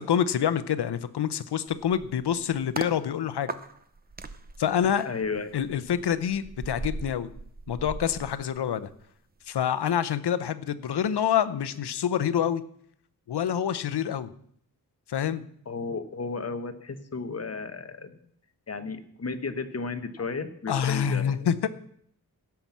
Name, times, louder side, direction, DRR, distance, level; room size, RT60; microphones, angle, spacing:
voice 1, 0.1-3.5 4.6-5.1 5.5-7.3 7.7-8.9 9.5-12.6 13.3-14.3 15.1-15.4 20.7-21.7, left 9 dB, 85° left, 14 dB, 0.8 m, -27 dB
sound 1, 1.7-3.0 3.5-9.1 9.4-9.6, right 3 dB, 25° right, 0.7 m, -39 dB
voice 2, 5.0-5.5 15.7-18.2 18.7-21.7, left 4 dB, 40° left, 9 dB, 1.1 m, -34 dB
16.5 x 5.9 x 7.3 m, 0.67 s
wide cardioid pair, 130°, 39 cm